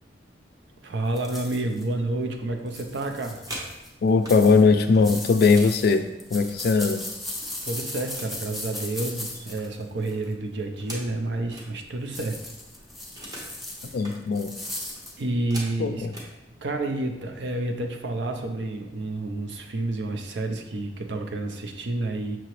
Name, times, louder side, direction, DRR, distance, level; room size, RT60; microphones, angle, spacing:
voice 1, 0.8-3.4 7.4-12.5 15.2-16.1 16.6-22.4, right 2 dB, 85° right, 4 dB, 0.6 m, -29 dB
sound 1, 1.2-1.8 2.7-3.9 4.3-10.2 12.1-15.2, left 1 dB, ahead, 0.6 m, -37 dB
sound 2, 3.5-4.4 4.8-7.1 7.4-8.4 8.7-11.7 12.1-12.2 12.4-13.6 13.9-14.2 14.7-16.3 17.2-17.3 17.7-18.0 18.3-18.8, equal, 20° right, 0.9 m, -43 dB
voice 2, 4.0-6.0 6.3-7.0 13.9-14.5 15.8-16.1, left 4 dB, 60° left, 9 dB, 0.3 m, -20 dB
6.0 x 2.9 x 3.0 m, 0.95 s
head